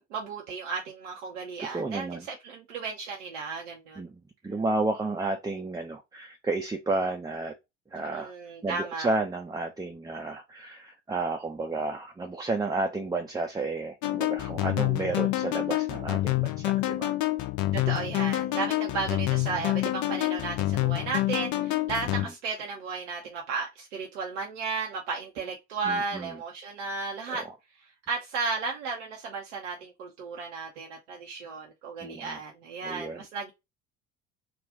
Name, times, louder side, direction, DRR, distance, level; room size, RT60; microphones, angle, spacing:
voice 1, 0.0-4.0 7.9-9.1 17.7-27.4 27.8-33.5, right 4 dB, 70° right, 0.8 m, -34 dB
voice 2, 1.7-2.2 4.0-4.1 4.4-7.5 7.9-8.3 8.6-17.1 25.9-26.3 32.0-32.4 32.8-33.2, right 2 dB, 10° right, 0.7 m, -31 dB
sound 1, 14.0-22.3, left 17 dB, 50° left, 0.8 m, -27 dB
3.7 x 2.5 x 3.6 m
figure-of-eight pair, 60°, 37 cm